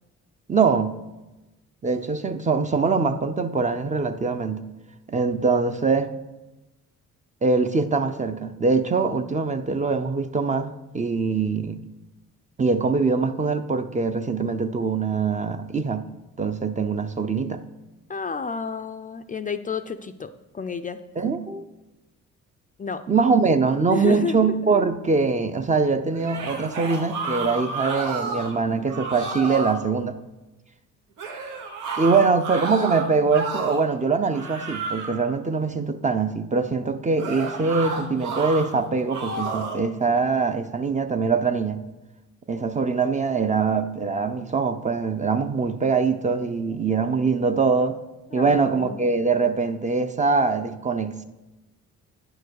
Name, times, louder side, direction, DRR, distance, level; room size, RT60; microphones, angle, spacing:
voice 1, 0.5-1.0 1.8-4.7 5.1-6.1 7.4-11.8 12.6-16.1 16.4-17.6 21.2-21.6 23.1-30.2 32.0-41.8 42.5-48.0 48.3-51.2, right 4 dB, 25° right, 0.6 m, -23 dB
voice 2, 18.1-21.0 22.8-23.0 23.7-24.4 48.3-49.1, left 5 dB, 25° left, 0.4 m, -30 dB
sound 1, 26.1-28.6 28.9-29.8 31.2-33.9 34.3-35.3 37.2-38.7 39.1-39.8, right 4 dB, 85° right, 1.4 m, -31 dB
9.6 x 4.7 x 6.4 m
cardioid pair, 90°, 30 cm